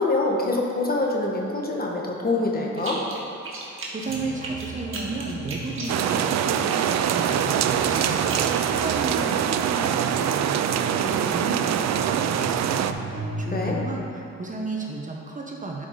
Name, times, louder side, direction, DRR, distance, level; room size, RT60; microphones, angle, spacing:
voice 1, 0.0-3.0 13.5-13.8, left 2 dB, 30° left, -1 dB, 1.3 m, -25 dB
sound 1, 2.8-3.2 3.4-6.8 7.2-8.7, right 3 dB, 45° right, 1.6 m, -36 dB
voice 2, 3.6-15.9, right 3 dB, 25° right, 0 dB, 0.9 m, -34 dB
sound 2, 4.1-13.9, right 3 dB, 85° right, 1.1 m, -36 dB
sound 3, 5.9-12.9, right 9 dB, 60° right, 0.4 m, -24 dB
11.0 x 5.2 x 3.8 m, 2.8 s
cardioid pair, 90°, 30 cm